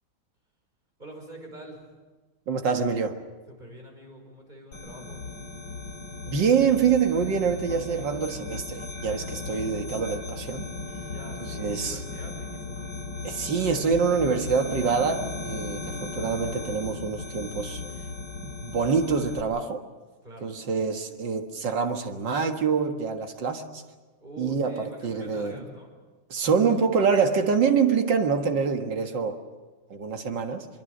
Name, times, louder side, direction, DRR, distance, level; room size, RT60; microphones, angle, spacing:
voice 1, 1.0-1.8 3.5-5.2 11.1-12.9 20.2-20.5 24.2-25.9, right 1 dB, 20° right, 2 dB, 5.3 m, -45 dB
voice 2, 2.5-3.2 6.3-10.7 11.4-12.0 13.2-17.8 18.4-19.8 20.4-23.8 24.4-25.6 26.3-29.4 29.9-30.7, right 6 dB, 60° right, 5 dB, 2.3 m, -25 dB
sound 1, 4.7-19.4, left 3 dB, 70° left, 3.5 m, -36 dB
24.0 x 23.5 x 6.7 m, 1.3 s
omnidirectional pair, 2.2 m